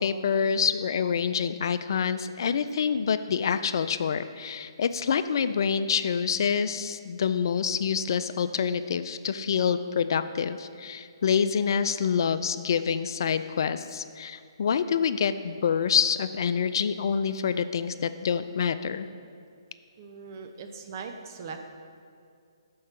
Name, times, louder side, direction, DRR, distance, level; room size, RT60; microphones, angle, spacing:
voice 1, 0.0-19.1, left 7 dB, 55° left, 12 dB, 0.3 m, -27 dB
voice 2, 20.0-21.6, right 5 dB, 40° right, 5 dB, 0.6 m, -40 dB
6.4 x 4.6 x 5.8 m, 2.3 s
hypercardioid pair, 145°, 3 cm